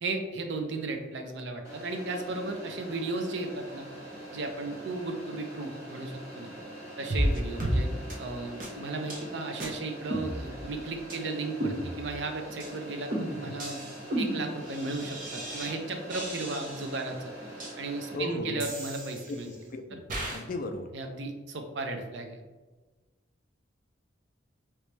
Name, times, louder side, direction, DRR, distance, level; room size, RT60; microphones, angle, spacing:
voice 1, 0.0-3.8 4.3-6.5 7.0-7.9 8.2-13.9 14.2-17.3 17.8-19.5 20.9-22.4, right 2 dB, 65° right, 5 dB, 0.5 m, -35 dB
sound 1, 1.6-18.2, right 1 dB, 15° right, 1.4 m, -44 dB
sound 2, 7.1-7.3 7.6-7.8 8.1-8.2 8.6-8.7 9.1-9.2 9.6-9.7 10.1-10.7 11.1-11.2 11.6-12.2 12.6-12.7 13.1-15.7 16.1-17.0 17.6-17.7 18.6-19.6 20.1-20.4, right 1 dB, 45° right, 0.8 m, -33 dB
voice 2, 18.1-18.7 19.3-20.0 20.3-20.9, left 2 dB, 45° left, 6 dB, 0.4 m, -36 dB
3.1 x 2.9 x 3.2 m, 1.3 s
head